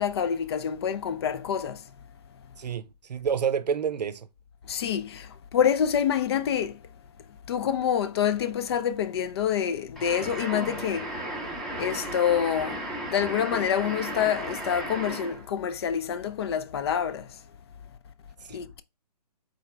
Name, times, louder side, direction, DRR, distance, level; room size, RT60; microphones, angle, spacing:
voice 1, 0.0-1.9 4.7-6.8 7.5-11.2 11.8-17.4 18.5-18.8, left 8 dB, 40° left, 0.4 m, -27 dB
voice 2, 2.6-4.3 18.5-18.6, right 7 dB, 75° right, 0.6 m, -29 dB
sound 1, 10.0-15.5, right 1 dB, ahead, 0.7 m, -35 dB
4.1 x 3.2 x 3.2 m
hypercardioid pair, 140°, 21 cm